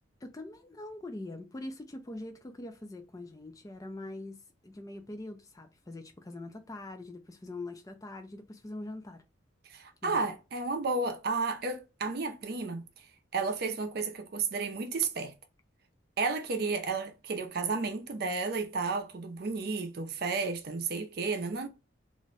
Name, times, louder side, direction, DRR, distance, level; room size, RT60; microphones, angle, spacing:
voice 1, 0.2-9.2 10.0-10.3, left 2 dB, 15° left, 0.3 m, -43 dB
voice 2, 9.7-12.8 13.3-15.3 16.2-21.7, right 4 dB, 50° right, 0.4 m, -32 dB
2.5 x 2.1 x 3.8 m
head